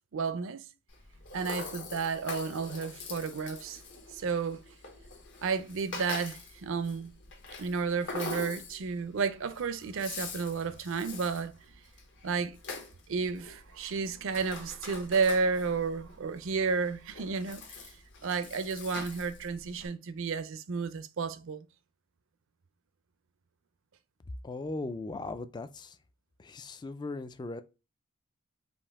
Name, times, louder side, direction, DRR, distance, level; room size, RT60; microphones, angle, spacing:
voice 1, 0.1-0.6 1.3-3.8 4.1-4.6 5.4-7.1 7.6-11.5 12.2-12.6 13.1-17.9 18.2-21.6, right 5 dB, 60° right, 0.5 m, -32 dB
Rattle (instrument), 0.9-19.9, left 3 dB, 60° left, 1.1 m, -44 dB
voice 2, 24.4-26.0 26.4-27.6, left 3 dB, 20° left, 0.3 m, -38 dB
5.3 x 2.5 x 3.5 m
head